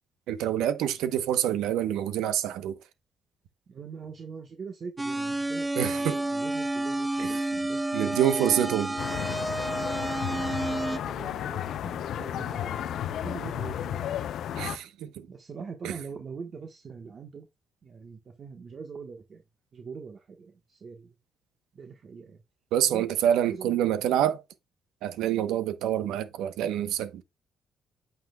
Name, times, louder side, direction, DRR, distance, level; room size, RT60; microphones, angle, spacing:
voice 1, 0.3-2.8 5.7-6.2 7.2-7.3 7.9-8.9 14.5-15.3 15.8-15.9 22.7-24.4 25.0-27.2, right 10 dB, 90° right, 0.9 m, -27 dB
voice 2, 3.7-9.4 10.2-14.1 15.3-17.5 17.8-19.4 19.7-21.2 21.7-22.4 22.9-23.1 23.5-24.1, right 5 dB, 50° right, 1.3 m, -43 dB
sound 1, 5.0-11.0, right 2 dB, 10° right, 0.3 m, -30 dB
sound 2, 9.0-14.8, left 10 dB, 75° left, 0.6 m, -33 dB
8.8 x 5.8 x 2.3 m
cardioid pair, 90°, 0 cm